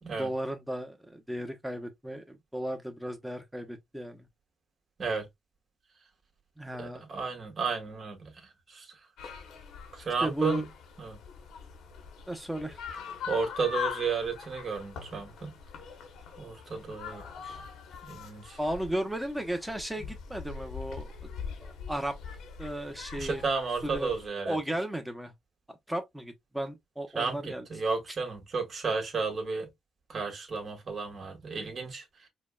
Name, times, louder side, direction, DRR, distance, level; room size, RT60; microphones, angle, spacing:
voice 1, 0.2-4.3 6.6-7.0 10.2-10.7 12.3-12.8 17.1-17.3 18.6-21.1 21.6-22.2 22.6-23.4 23.8-24.1 24.4-25.3 25.7-27.6, right 1 dB, 5° right, 1.0 m, -35 dB
voice 2, 6.8-8.3 8.7-8.9 9.9-10.7 11.0-11.2 13.3-15.5 16.4-17.6 18.0-18.6 20.0-20.1 23.2-24.6 27.2-29.7 30.1-32.0, right 4 dB, 45° right, 1.8 m, -33 dB
sound 1, 9.2-24.3, left 6 dB, 85° left, 1.1 m, -42 dB
5.0 x 2.4 x 2.4 m
cardioid pair, 95°, 0 cm